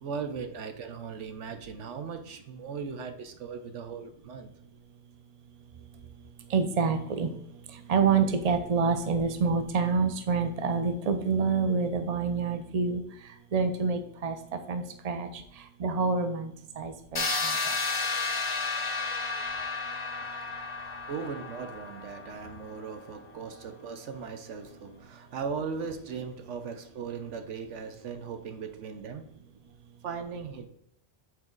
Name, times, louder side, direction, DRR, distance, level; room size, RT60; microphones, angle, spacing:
voice 1, 0.0-4.5 20.1-20.3 21.1-29.3 30.0-30.7, right 5 dB, 85° right, 1.1 m, -38 dB
voice 2, 6.5-7.3 7.9-13.0 13.5-14.4 14.7-15.3 15.8-17.6, right 5 dB, 40° right, 0.7 m, -27 dB
sound 1, 17.2-23.0, left 3 dB, 30° left, 0.7 m, -32 dB
8.4 x 4.4 x 3.8 m
omnidirectional pair, 1.2 m